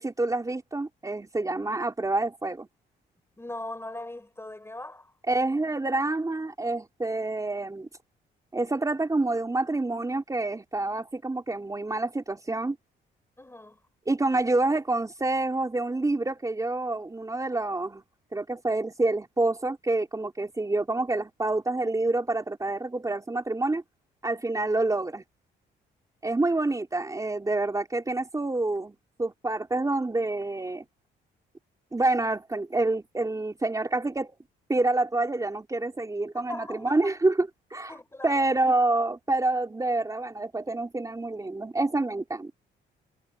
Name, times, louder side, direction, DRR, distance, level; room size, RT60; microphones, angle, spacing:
voice 1, 0.0-2.7 5.3-7.9 8.5-12.8 14.1-18.0 18.3-23.8 24.2-25.2 26.2-30.8 31.9-34.3 34.7-37.9 38.2-42.5, right 2 dB, 15° right, 3.7 m, -27 dB
voice 2, 3.4-5.1 13.4-13.8 36.3-37.1 37.9-38.5, left 1 dB, 10° left, 4.3 m, -40 dB
cardioid pair, 90°, 20 cm